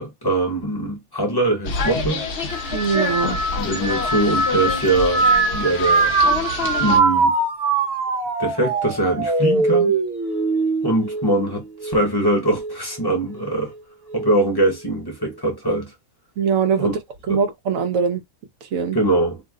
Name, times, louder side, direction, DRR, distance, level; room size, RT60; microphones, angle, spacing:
voice 1, 0.0-2.2 3.3-6.1 6.6-7.4 8.4-10.0 10.8-13.7 14.1-15.9 16.8-16.9 17.3-17.4 18.9-19.4, right 2 dB, 20° left, 0.8 m, -22 dB
sound 1, 1.6-7.0, left 4 dB, 55° left, 0.9 m, -27 dB
sound 2, 2.5-12.1 12.5-13.1 14.1-14.5, right 3 dB, 50° right, 1.1 m, -22 dB
voice 2, 2.7-3.4 16.4-16.9 17.3-18.2 18.7-19.0, right 6 dB, 75° right, 1.1 m, -21 dB
2.8 x 2.1 x 3.6 m
omnidirectional pair, 1.4 m